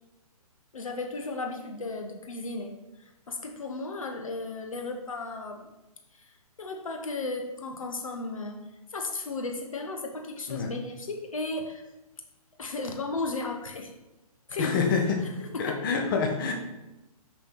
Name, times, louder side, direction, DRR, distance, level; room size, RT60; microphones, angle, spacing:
voice 1, 0.7-5.7 6.1-8.6 8.9-11.8 12.6-13.9 14.5-14.9 15.2-15.9, left 3 dB, 60° left, 3 dB, 1.2 m, -35 dB
voice 2, 14.6-15.2 15.6-16.5, left 5 dB, 35° left, 2 dB, 1.3 m, -26 dB
6.8 x 5.8 x 4.8 m, 0.99 s
figure-of-eight pair, 130°, 20 cm